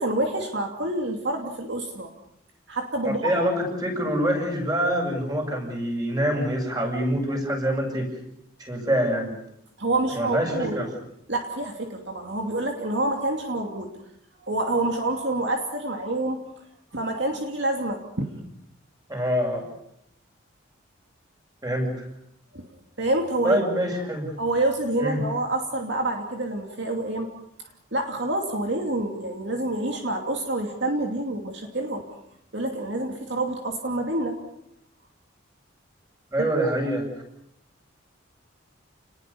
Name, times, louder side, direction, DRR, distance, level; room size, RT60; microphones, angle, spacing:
voice 1, 0.0-2.1 2.7-3.2 9.8-10.8 11.3-13.9 14.4-16.4 16.9-18.3 22.5-22.6 23.0-23.6 24.4-27.3 27.9-32.0 32.5-34.4 36.4-36.5, right 2 dB, 60° right, 2 dB, 2.7 m, -27 dB
voice 2, 3.0-8.1 8.6-9.3 10.2-10.9 19.1-19.7 21.6-21.9 23.4-24.3 25.0-25.2 36.3-37.1, equal, 20° right, 2 dB, 7.0 m, -25 dB
29.5 x 20.5 x 7.0 m, 0.75 s
head